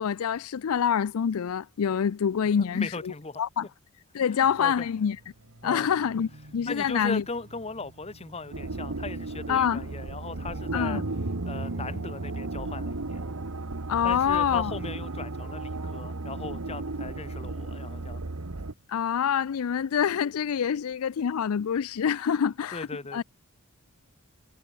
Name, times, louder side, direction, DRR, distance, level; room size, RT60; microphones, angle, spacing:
voice 1, 0.0-3.1 3.4-3.7 4.1-5.2 5.6-7.2 9.5-9.8 10.7-11.0 13.9-14.7 18.9-22.9 23.1-23.2, left 7 dB, 75° left, 0.4 m, -26 dB
voice 2, 2.6-3.4 4.3-4.9 5.6-5.9 6.6-11.0 11.5-13.2 14.0-18.3 22.3-23.2, left 3 dB, 30° left, 1.3 m, -38 dB
sound 1, 4.4-20.8, right 1 dB, 65° right, 2.1 m, -56 dB
sound 2, 8.5-18.7, right 2 dB, 85° right, 1.3 m, -34 dB
sound 3, 10.3-15.9, equal, 10° right, 2.2 m, -48 dB
head